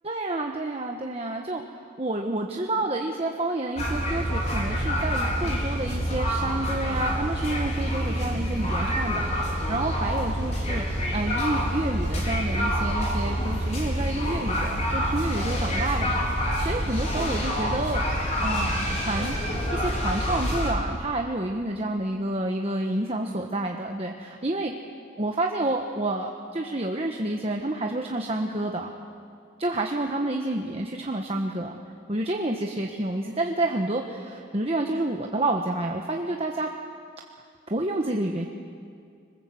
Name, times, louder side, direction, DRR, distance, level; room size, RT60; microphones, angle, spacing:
voice 1, 0.0-1.6 2.0-10.8 11.1-18.0 18.4-19.4 19.7-24.7 25.2-28.9 29.6-31.8 32.1-36.7 37.7-38.5, right 2 dB, 30° right, 1 dB, 1.3 m, -29 dB
sound 1, 3.8-20.7, equal, 35° left, 4.9 m, -27 dB
26.5 x 26.0 x 7.8 m, 2.3 s
head